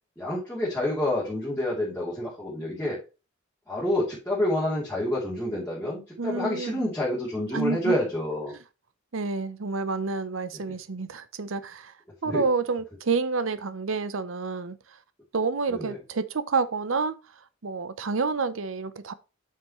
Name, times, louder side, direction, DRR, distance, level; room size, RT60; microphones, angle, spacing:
voice 1, 0.2-3.0 3.7-8.5 10.5-10.8 12.2-12.4 15.7-16.0, left 1 dB, 10° left, 3.0 m, -28 dB
voice 2, 6.2-6.8 7.5-7.9 9.1-11.9 12.2-14.8 15.3-17.2 17.6-19.1, right 4 dB, 65° right, 0.7 m, -29 dB
8.2 x 5.8 x 3.1 m
head